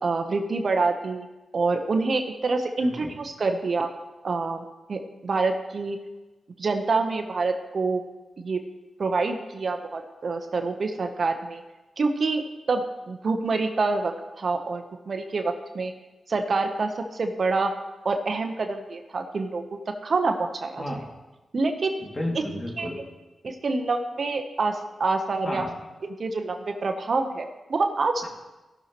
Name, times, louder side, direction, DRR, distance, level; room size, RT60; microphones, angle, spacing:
voice 1, 0.0-1.3 1.5-3.9 4.2-4.6 4.9-6.0 6.6-8.0 8.4-8.6 9.0-11.6 12.0-12.4 12.7-15.9 16.3-17.7 18.0-19.6 20.0-20.8 21.5-22.0 22.8-22.9 23.4-25.6 26.2-26.6 26.8-28.3, right 3 dB, 55° right, 5 dB, 0.9 m, -26 dB
voice 2, 22.0-23.0 25.4-25.7 28.2-28.3, left 1 dB, 25° left, -1 dB, 2.4 m, -32 dB
17.0 x 6.5 x 3.1 m, 1.1 s
cardioid pair, 60°, 0 cm